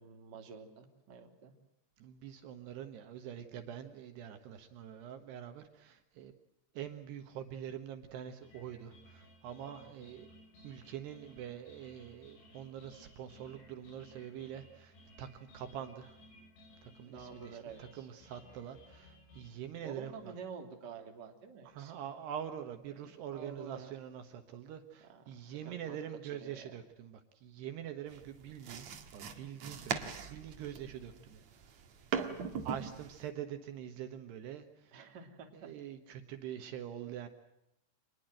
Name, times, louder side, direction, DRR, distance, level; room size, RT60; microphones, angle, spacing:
voice 1, 0.0-1.5 10.0-10.1 17.0-18.1 19.8-21.9 22.9-23.9 25.1-26.0 26.4-26.7 32.3-32.4 34.9-35.7, right 5 dB, 30° right, 3 dB, 2.5 m, -49 dB
voice 2, 2.0-6.3 6.7-10.3 10.6-16.2 16.8-20.3 21.7-28.9 29.1-31.4 32.6-35.0 35.5-37.3, right 10 dB, 70° right, 7 dB, 3.1 m, -45 dB
sound 1, 8.4-19.5, left 1 dB, 75° left, 8.7 m, -59 dB
sound 2, 28.1-33.3, right 6 dB, 50° right, 2.2 m, -40 dB
26.5 x 21.0 x 7.8 m, 0.84 s
omnidirectional pair, 5.4 m